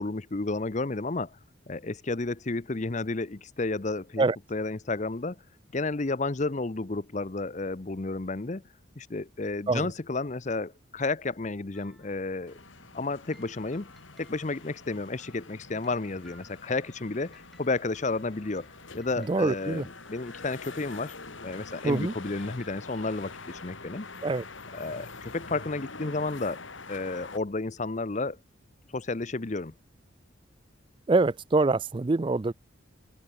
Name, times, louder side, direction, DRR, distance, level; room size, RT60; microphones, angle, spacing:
voice 1, 0.0-1.4 1.7-4.2 4.5-5.4 5.7-8.6 9.0-12.6 12.9-13.9 14.2-18.7 18.9-21.1 21.4-24.1 24.7-26.6 26.9-28.4 28.9-29.7, left 3 dB, 35° left, 0.7 m, -32 dB
sound 1, 11.7-12.6 13.3-23.2, equal, ahead, 4.3 m, -61 dB
sound 2, 12.5-27.4, left 3 dB, 75° left, 3.8 m, -45 dB
voice 2, 19.2-19.9 21.8-22.1 24.2-24.4 31.1-32.5, right 3 dB, 25° right, 0.4 m, -25 dB
open air
head